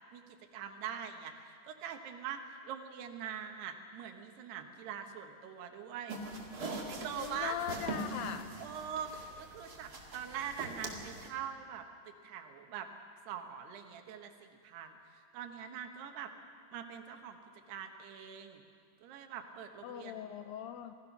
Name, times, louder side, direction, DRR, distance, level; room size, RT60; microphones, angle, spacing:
voice 1, 0.1-6.2 6.9-7.6 8.6-11.8 12.2-12.9 13.3-16.3 16.7-17.4 17.7-18.6 19.0-20.3, right 8 dB, 75° right, 5 dB, 3.4 m, -43 dB
sound 1, 6.1-11.3, right 2 dB, 30° right, 1.8 m, -42 dB
voice 2, 7.2-8.5 19.8-20.9, left 9 dB, 80° left, 8 dB, 2.1 m, -40 dB
27.0 x 19.0 x 6.1 m, 2.2 s
omnidirectional pair, 4.8 m